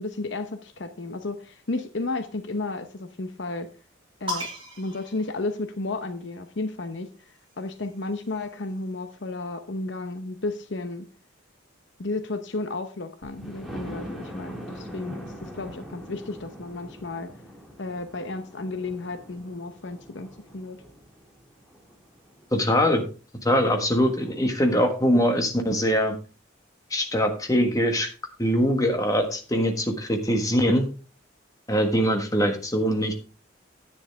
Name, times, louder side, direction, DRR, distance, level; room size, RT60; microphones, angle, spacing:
voice 1, 0.0-3.7 4.2-4.5 4.8-7.1 7.6-11.0 12.0-17.3 17.8-20.3 20.5-20.8, left 2 dB, 60° left, 8 dB, 0.9 m, -33 dB
sound 1, 4.3-6.1 7.2-8.8, left 1 dB, 25° right, 6.1 m, -38 dB
Thunder, 13.2-22.9 23.5-23.6 24.0-24.1 24.4-24.5, equal, ahead, 2.3 m, -42 dB
voice 2, 22.5-23.0 23.4-26.1 26.9-28.1 28.4-30.9 31.7-33.1, equal, 15° left, 4 dB, 1.5 m, -22 dB
10.0 x 9.3 x 3.5 m, 0.35 s
head